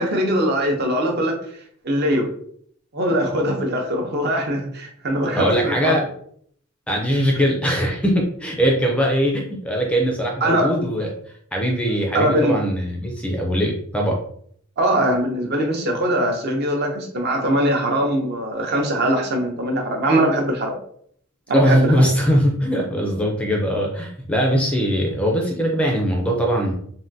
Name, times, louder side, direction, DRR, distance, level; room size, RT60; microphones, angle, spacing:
voice 1, 0.0-1.3 1.8-2.3 2.9-5.9 10.4-10.7 12.1-12.5 14.8-20.8 21.5-21.9, right 1 dB, 50° right, 2 dB, 0.6 m, -21 dB
voice 2, 5.4-6.0 6.9-11.1 11.5-14.2 21.5-26.7, equal, 5° left, 0 dB, 0.4 m, -21 dB
3.5 x 2.2 x 2.6 m, 0.62 s
head